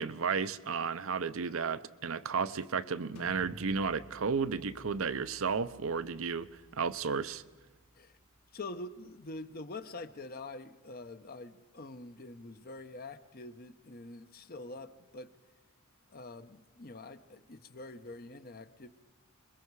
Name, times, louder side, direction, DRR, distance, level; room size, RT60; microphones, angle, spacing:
voice 1, 0.0-6.5 6.7-7.4, right 5 dB, 65° right, 0.6 m, -33 dB
sound 1, 3.2-8.8, equal, 85° left, 1.6 m, -55 dB
voice 2, 8.5-15.3 16.1-18.9, left 2 dB, 45° left, 0.9 m, -45 dB
26.0 x 22.0 x 4.8 m
head